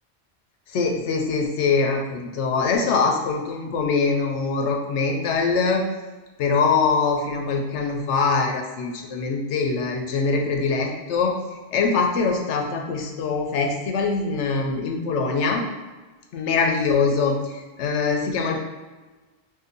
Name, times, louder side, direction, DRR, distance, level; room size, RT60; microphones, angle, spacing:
voice 1, 0.7-5.8 6.4-11.3 11.7-15.6 16.3-17.4 17.8-18.6, left 4 dB, 85° left, 2 dB, 0.9 m, -23 dB
2.7 x 2.7 x 3.8 m, 1.3 s
omnidirectional pair, 1.1 m